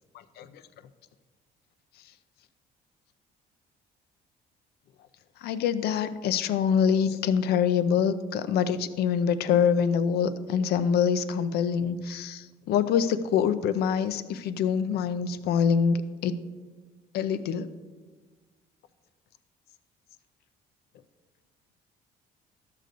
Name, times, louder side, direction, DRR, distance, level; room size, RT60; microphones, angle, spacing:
voice 1, 5.4-16.0 16.2-16.3 17.1-17.7, left 7 dB, 70° left, 12 dB, 0.5 m, -25 dB
12.5 x 6.7 x 2.6 m, 1.3 s
cardioid pair, 110°, 17 cm